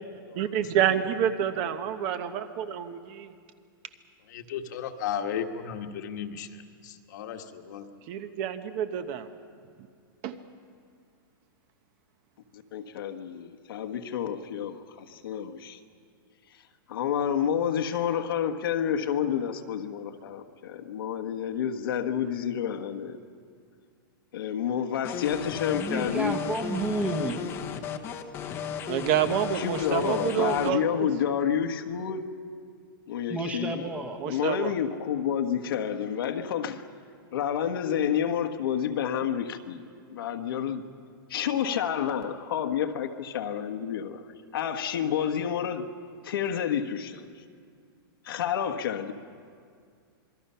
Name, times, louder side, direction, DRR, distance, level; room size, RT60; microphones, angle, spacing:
voice 1, 0.4-3.3 8.1-9.3 10.2-10.3 28.9-31.1 34.2-34.7, right 9 dB, 30° right, 10 dB, 0.9 m, -28 dB
voice 2, 4.3-6.5 6.8-7.9, left 8 dB, 50° left, 5 dB, 1.5 m, -35 dB
voice 3, 12.5-15.8 16.9-23.2 24.3-26.4 28.8-28.9 29.5-32.2 33.1-33.9 34.2-36.8 37.3-39.8 40.1-40.8 41.3-44.2 44.5-45.9 46.2-47.2 48.2-49.1, left 8 dB, 70° left, 6 dB, 1.5 m, -29 dB
sound 1, 25.0-30.7, left 8 dB, 20° left, 1.0 m, -35 dB
voice 4, 25.7-27.4 33.3-34.2, right 2 dB, 10° right, 4 dB, 1.2 m, -31 dB
26.5 x 22.0 x 5.7 m, 2.2 s
supercardioid pair, 170°, 12 cm